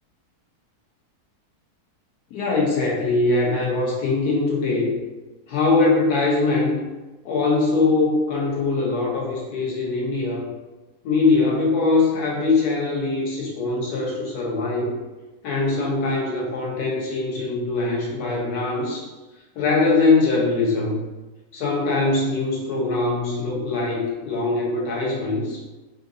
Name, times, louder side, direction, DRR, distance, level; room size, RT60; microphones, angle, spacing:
voice 1, 2.3-4.9 5.5-6.8 7.2-10.4 11.0-14.9 15.4-19.1 19.5-21.0 21.5-25.6, left 3 dB, 85° left, -3 dB, 1.4 m, -22 dB
3.8 x 2.7 x 2.6 m, 1.1 s
omnidirectional pair, 1.6 m